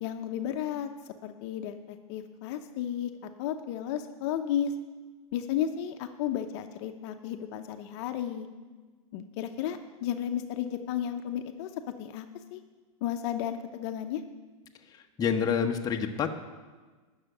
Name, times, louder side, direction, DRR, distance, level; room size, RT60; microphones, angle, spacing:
voice 1, 0.0-3.1 3.4-4.7 5.3-8.5 9.1-11.7 12.0-12.3 12.5-12.6 13.0-14.2, left 10 dB, 50° left, 7 dB, 0.8 m, -33 dB
voice 2, 15.2-16.3, left 7 dB, 20° left, 3 dB, 1.0 m, -27 dB
11.0 x 6.5 x 9.1 m, 1.3 s
hypercardioid pair, 125°, 18 cm